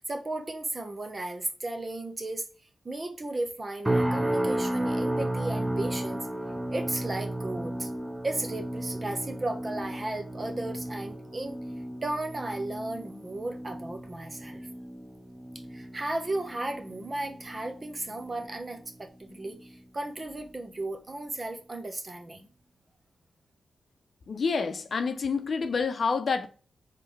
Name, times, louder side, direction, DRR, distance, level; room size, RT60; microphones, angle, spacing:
voice 1, 0.1-2.4 2.8-6.3 6.7-7.9 8.2-11.6 12.0-14.7 15.7-22.5, right 2 dB, 35° right, 0.9 m, -35 dB
sound 1, 3.8-19.1 19.4-19.8 20.3-20.5, right 1 dB, 15° right, 0.6 m, -33 dB
voice 2, 24.3-26.5, left 5 dB, 60° left, 0.6 m, -28 dB
3.7 x 3.3 x 3.2 m
cardioid pair, 55°, 0 cm